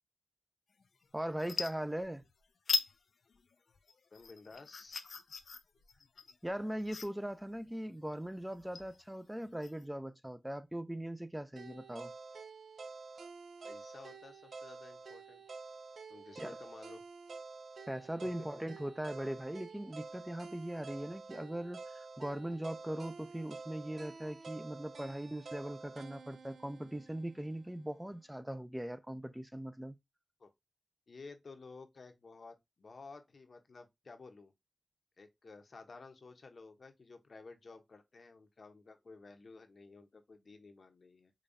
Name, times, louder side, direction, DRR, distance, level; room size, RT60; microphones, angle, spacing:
sound 1, 0.8-1.0 1.3-2.3 2.7-2.9 3.3-9.8, left 5 dB, 75° left, 0.4 m, -40 dB
voice 1, 1.1-2.3 6.4-12.1 16.4-16.6 17.9-30.0, right 1 dB, 10° right, 0.4 m, -40 dB
voice 2, 4.1-5.0 13.6-15.4 16.1-17.0 18.2-18.5 30.4-30.5 31.1-34.5 35.2-41.3, left 4 dB, 60° left, 0.7 m, -53 dB
sound 2, 11.6-27.7, right 4 dB, 80° right, 0.4 m, -49 dB
5.0 x 2.3 x 2.6 m
cardioid pair, 55°, 0 cm